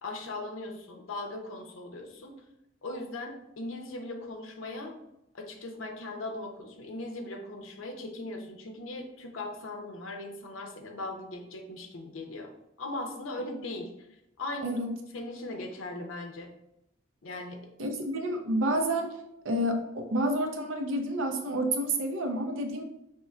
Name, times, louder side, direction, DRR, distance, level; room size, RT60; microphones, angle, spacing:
voice 1, 0.0-2.3 2.8-4.9 5.3-12.5 12.8-13.9 14.4-14.8 15.1-16.5 17.2-17.6, left 2 dB, 85° left, 3 dB, 0.6 m, -39 dB
voice 2, 17.8-19.1 19.4-22.8, right 1 dB, 80° right, 4 dB, 0.6 m, -29 dB
5.5 x 2.9 x 2.3 m, 0.85 s
head